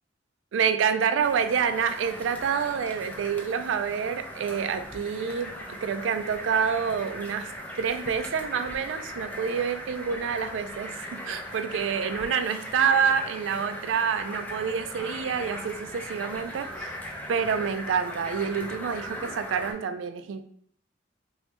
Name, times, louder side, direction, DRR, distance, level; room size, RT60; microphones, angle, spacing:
voice 1, 0.5-5.5 5.8-7.5 7.8-17.0 17.3-20.4, right 7 dB, 80° right, 9 dB, 0.3 m, -27 dB
sound 1, 1.2-19.7, equal, 10° left, 0.4 m, -39 dB
2.8 x 2.7 x 3.3 m, 0.62 s
head